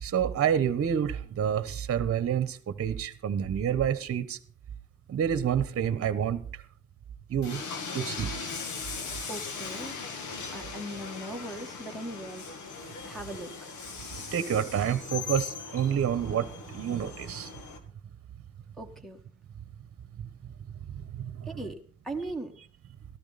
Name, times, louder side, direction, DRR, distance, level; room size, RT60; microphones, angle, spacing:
voice 1, 0.0-4.4 5.1-6.4 7.3-7.6 7.9-8.3 14.1-17.5 21.1-21.5, right 8 dB, 50° right, 1.1 m, -28 dB
Train, 7.4-17.8, left 5 dB, 75° left, 2.1 m, -39 dB
voice 2, 9.3-10.0 10.5-12.5 13.0-13.8 18.8-19.2 21.5-22.5, right 1 dB, ahead, 1.7 m, -39 dB
13.5 x 12.5 x 4.1 m
cardioid pair, 90°, 30 cm